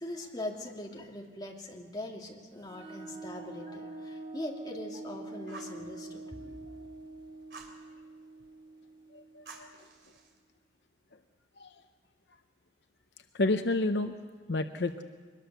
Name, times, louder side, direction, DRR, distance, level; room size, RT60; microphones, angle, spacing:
voice 1, 0.0-6.9, left 1 dB, 25° left, 0 dB, 2.6 m, -41 dB
sound 1, 2.6-10.0, right 2 dB, 25° right, 2.0 m, -45 dB
Fire, 5.5-5.8 7.5-7.8 9.5-10.4, right 4 dB, 65° right, 3.0 m, -49 dB
voice 2, 9.1-9.7 11.6-11.7 13.3-14.2 14.5-15.0, left 2 dB, 65° left, 8 dB, 0.8 m, -30 dB
23.5 x 21.0 x 6.8 m, 1.5 s
head